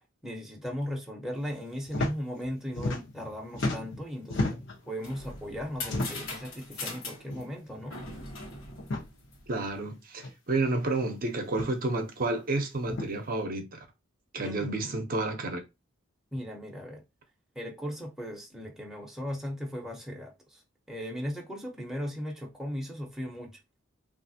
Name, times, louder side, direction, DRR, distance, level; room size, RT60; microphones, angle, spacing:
voice 1, 0.2-4.6 4.9-8.0 14.3-14.9 16.3-17.0 17.6-20.6 20.9-23.6, equal, ahead, 0.6 m, -37 dB
sound 1, 1.9-2.1 2.4-3.3 3.5-4.8 5.8-6.4 7.3-7.5 7.8-7.9 8.8-9.1 10.2-10.3 11.5-11.8 12.8-13.1, left 2 dB, 60° left, 0.8 m, -32 dB
sound 2, 4.7-9.7, left 3 dB, 80° left, 1.1 m, -41 dB
voice 2, 9.5-13.8 14.3-15.6, right 2 dB, 45° right, 0.6 m, -30 dB
3.3 x 2.4 x 2.6 m
head